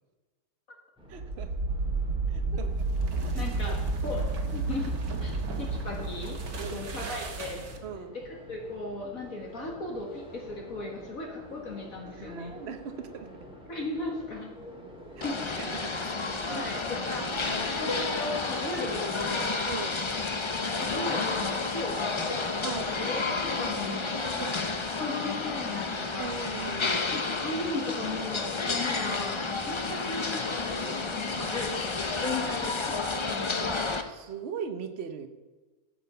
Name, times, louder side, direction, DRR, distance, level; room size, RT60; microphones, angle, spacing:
sound 1, 1.0-18.1, equal, 5° right, 1.9 m, -49 dB
voice 1, 1.1-1.5 2.3-2.9 3.3-3.8 6.6-6.9 7.8-8.2 12.0-13.3 15.2-15.3 15.6-16.0 16.3-16.6 17.2-17.6 19.7-20.0 22.6-22.9 23.9-24.0 24.4-24.5 26.2-27.0 34.1-35.3, right 6 dB, 45° right, 8 dB, 1.1 m, -39 dB
sound 2, 1.1-7.9, right 3 dB, 75° right, 1.9 m, -31 dB
voice 2, 3.3-4.9 5.2-6.4 6.7-7.6 8.1-12.5 13.7-14.5 15.2-15.4 16.6-19.7 20.5-22.4 22.6-24.5 25.0-26.3 27.1-33.8, left 2 dB, 65° left, 0 dB, 2.3 m, -37 dB
sound 3, 15.2-34.0, left 3 dB, 35° left, 0.5 m, -31 dB
15.0 x 7.4 x 5.6 m, 1.3 s
omnidirectional pair, 1.6 m